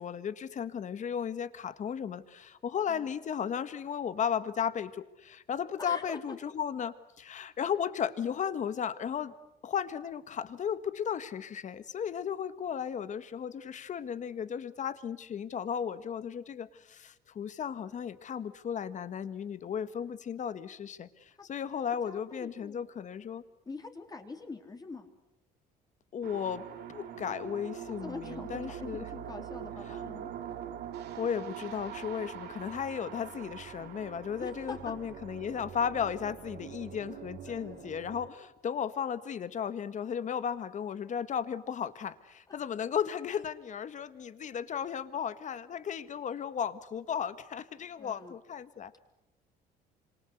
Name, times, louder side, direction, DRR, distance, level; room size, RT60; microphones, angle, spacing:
voice 1, 0.0-9.3 9.6-23.4 26.1-26.6 26.9-29.0 31.2-49.0, left 8 dB, 45° left, 13 dB, 1.7 m, -35 dB
voice 2, 5.8-6.4 9.2-9.3 22.0-22.8 23.6-25.1 28.0-30.3 34.4-34.9 37.5-37.9 43.3-43.4 48.0-48.4, left 3 dB, 20° left, 4 dB, 3.5 m, -44 dB
sound 1, 26.2-38.3, right 9 dB, 75° right, 3.0 m, -43 dB
27.5 x 26.5 x 8.2 m, 0.90 s
cardioid pair, 110°, 17 cm